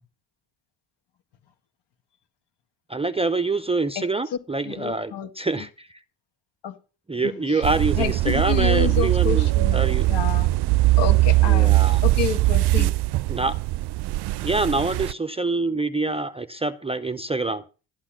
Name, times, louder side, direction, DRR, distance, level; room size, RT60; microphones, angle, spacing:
voice 1, 2.9-5.9 7.1-10.0 11.5-12.0 12.8-12.9 13.3-13.6 14.4-17.6, right 3 dB, 10° right, 0.6 m, -26 dB
voice 2, 4.0-4.4 4.6-5.7 6.6-6.8 7.2-7.7 8.0-10.6 11.0-11.8 12.0-12.9, left 9 dB, 60° left, 2.0 m, -29 dB
sound 1, 7.6-15.1, right 19 dB, 55° right, 0.5 m, -21 dB
12.5 x 8.6 x 5.9 m
cardioid pair, 105°, 48 cm